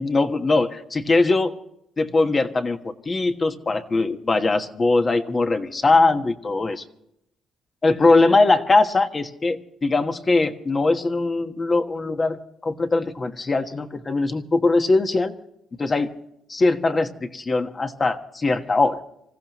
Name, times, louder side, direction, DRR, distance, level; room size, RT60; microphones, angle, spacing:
voice 1, 0.0-1.5 2.0-6.8 7.8-15.3 15.8-16.2 16.5-19.0, left 3 dB, 30° left, 7 dB, 1.4 m, -21 dB
26.5 x 15.0 x 3.0 m, 0.78 s
cardioid pair, 90°, 0 cm